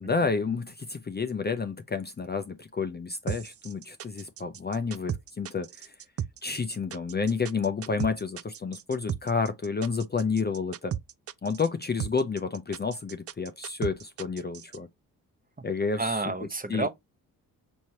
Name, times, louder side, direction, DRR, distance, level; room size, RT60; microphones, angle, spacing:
voice 1, 0.0-5.9 6.4-10.9 11.4-14.9 15.6-16.3 16.7-16.9, left 4 dB, 25° left, 0.6 m, -30 dB
sound 1, 3.3-14.8, right 9 dB, 40° right, 0.4 m, -35 dB
voice 2, 16.0-16.9, right 3 dB, 20° right, 1.0 m, -30 dB
6.2 x 3.0 x 2.8 m
supercardioid pair, 55°, 40 cm